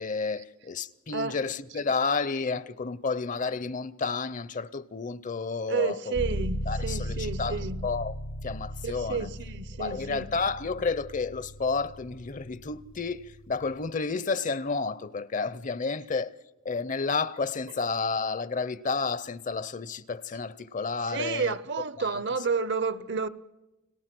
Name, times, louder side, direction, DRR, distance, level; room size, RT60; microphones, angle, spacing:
voice 1, 0.0-6.2 6.7-8.1 8.4-9.3 9.8-16.3 16.6-21.6 22.0-22.2, left 4 dB, 35° left, 0.6 m, -31 dB
voice 2, 5.7-7.8 8.8-10.3 21.1-23.3, right 5 dB, 55° right, 0.8 m, -31 dB
sound 1, 6.1-13.9, equal, 90° left, 1.8 m, -37 dB
30.0 x 18.5 x 6.0 m
head